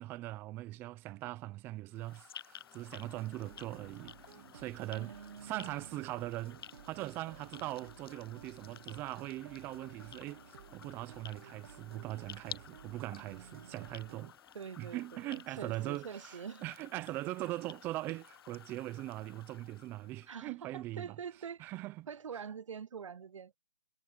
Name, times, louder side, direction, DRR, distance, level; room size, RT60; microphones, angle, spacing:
voice 1, 0.0-5.2 5.4-6.6 6.8-14.3 14.8-21.1 21.6-22.1, right 17 dB, 15° right, 0.6 m, -41 dB
sound 1, 1.9-20.4, left 9 dB, 50° left, 0.5 m, -54 dB
sound 2, 2.5-18.4, left 7 dB, 10° left, 4.0 m, -66 dB
sound 3, 3.1-14.3, right 9 dB, 50° right, 1.0 m, -55 dB
voice 2, 4.9-6.0 12.8-13.9 14.5-16.6 20.3-21.7 22.1-23.5, right 7 dB, 85° right, 0.5 m, -46 dB
hypercardioid pair, 155°, 16 cm